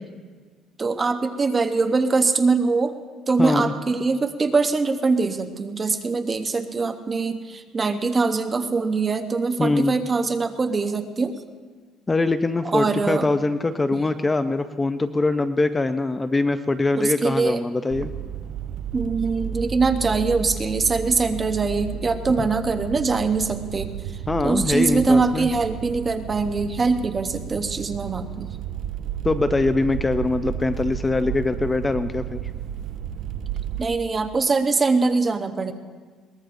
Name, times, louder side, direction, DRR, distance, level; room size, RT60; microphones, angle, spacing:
voice 1, 0.8-3.0 3.3-11.4 12.6-13.3 17.0-17.6 18.9-23.9 24.4-28.6 33.8-35.7, right 4 dB, 25° right, 7 dB, 0.9 m, -23 dB
voice 2, 3.4-3.7 9.6-10.0 12.1-18.1 24.3-25.5 29.2-32.4, left 3 dB, 15° left, 10 dB, 0.4 m, -23 dB
sound 1, 17.9-33.8, right 8 dB, 65° right, 0.5 m, -33 dB
22.0 x 19.5 x 2.6 m, 1.5 s
cardioid pair, 130°, 0 cm